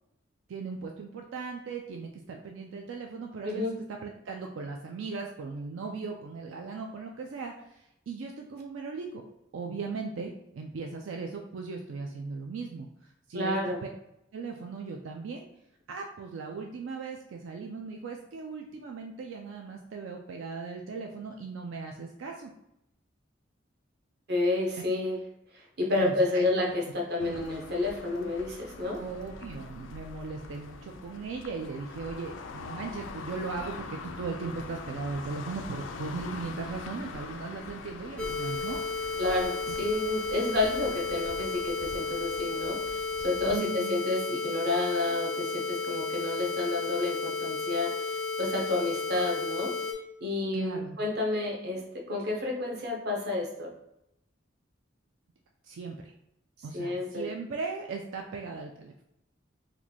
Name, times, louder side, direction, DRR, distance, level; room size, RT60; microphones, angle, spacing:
voice 1, 0.5-9.2 9.5-13.7 14.3-15.5 15.9-22.5 26.0-26.5 27.2-27.4 28.9-38.8 39.7-39.8 43.5-44.0 50.5-51.0 55.6-56.1 56.6-58.9, right 4 dB, 85° right, 2 dB, 0.4 m, -38 dB
voice 2, 3.4-3.8 13.3-13.8 24.3-25.2 25.5-29.0 39.2-49.7 50.2-53.7 56.7-57.3, left 2 dB, 55° right, 0 dB, 0.8 m, -30 dB
sound 1, 27.2-43.6, left 4 dB, 80° left, 0.4 m, -43 dB
sound 2, 38.2-49.9, left 4 dB, 5° left, 0.4 m, -33 dB
3.1 x 2.2 x 3.9 m, 0.82 s
head